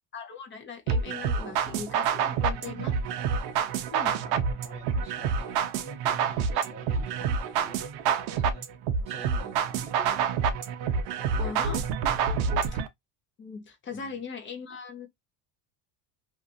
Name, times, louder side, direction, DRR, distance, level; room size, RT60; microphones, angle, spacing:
voice 1, 0.1-2.9 3.9-4.1 11.4-11.8 12.7-12.8 13.4-15.1, left 5 dB, 25° left, 0.5 m, -39 dB
sound 1, 0.9-12.9, right 6 dB, 55° right, 0.5 m, -28 dB
voice 2, 3.4-3.7 4.0-8.7 9.1-10.3 12.3-12.7 13.9-14.1, right 2 dB, 10° right, 1.2 m, -47 dB
2.5 x 2.4 x 2.4 m
cardioid pair, 145°, 49 cm